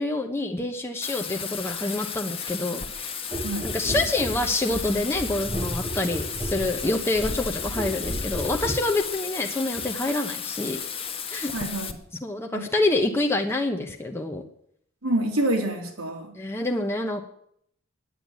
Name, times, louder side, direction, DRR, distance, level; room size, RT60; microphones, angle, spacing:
voice 1, 0.0-3.3 3.6-10.8 11.3-11.5 12.2-14.4 16.3-17.2, left 2 dB, 10° left, 2 dB, 1.0 m, -27 dB
Bathtub (filling or washing), 1.0-11.9, left 7 dB, 25° left, 1.2 m, -34 dB
sound 1, 3.3-8.9 9.7-9.9, right 1 dB, 20° right, 1.7 m, -33 dB
voice 2, 11.5-11.9 12.5-12.6 15.0-16.3, right 1 dB, 90° right, 2 dB, 3.1 m, -26 dB
10.0 x 8.9 x 9.5 m, 0.67 s
head